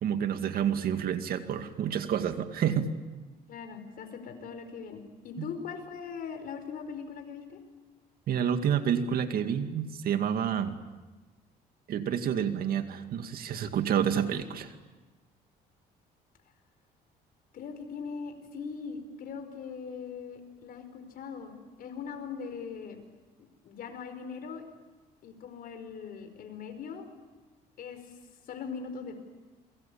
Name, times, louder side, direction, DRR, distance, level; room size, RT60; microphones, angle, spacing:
voice 1, 0.0-2.9 5.4-5.5 8.3-10.8 11.9-14.7, right 8 dB, 60° right, 8 dB, 2.2 m, -29 dB
voice 2, 3.5-7.6 17.5-23.0 23.6-24.6 25.2-27.1 27.8-28.0 28.5-29.1, left 6 dB, 60° left, 7 dB, 4.9 m, -40 dB
28.5 x 23.0 x 8.7 m, 1.2 s
cardioid pair, 110°, 17 cm